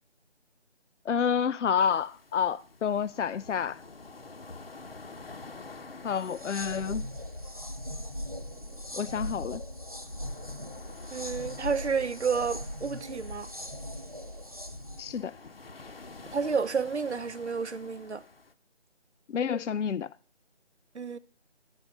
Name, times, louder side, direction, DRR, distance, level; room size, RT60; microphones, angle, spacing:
voice 1, 1.1-3.8 6.0-7.0 8.9-9.6 15.0-15.3 19.3-20.1, left 7 dB, 85° left, 0.5 m, -29 dB
sound 1, 1.8-18.5, left 3 dB, 55° left, 0.9 m, -50 dB
sound 2, 6.2-15.2, equal, 30° right, 0.5 m, -39 dB
voice 2, 11.1-13.5 16.3-18.2 20.9-21.2, right 5 dB, 70° right, 0.7 m, -30 dB
10.5 x 4.6 x 6.5 m
figure-of-eight pair, 170°, 35 cm